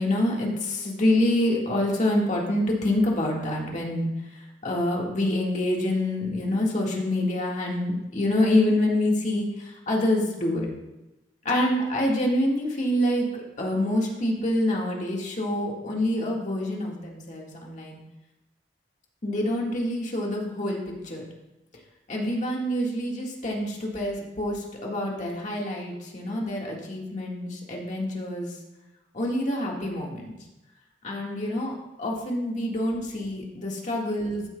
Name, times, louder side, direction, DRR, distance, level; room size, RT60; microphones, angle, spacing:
voice 1, 0.0-4.1 4.4-10.7 11.5-18.0 19.2-21.3 22.1-28.6 29.1-30.3 31.0-34.5, left 1 dB, 45° left, -1 dB, 1.8 m, -26 dB
13.5 x 7.6 x 2.3 m, 0.99 s
head